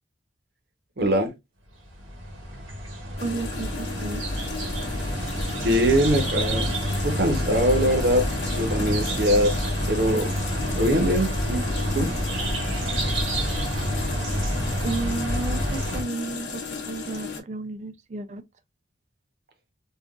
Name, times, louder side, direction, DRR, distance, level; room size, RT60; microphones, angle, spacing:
voice 1, 1.0-1.3 5.6-6.7 7.0-8.3 8.5-9.5 9.9-10.3 10.7-11.6 11.9-12.1, equal, 55° right, 0.9 m, -22 dB
sound 1, 1.9-16.0, equal, 85° right, 1.2 m, -28 dB
sound 2, 3.2-17.4, left 4 dB, 70° left, 1.0 m, -35 dB
voice 2, 3.2-4.2 14.8-18.4, right 3 dB, 35° right, 0.4 m, -32 dB
3.6 x 2.4 x 2.3 m
head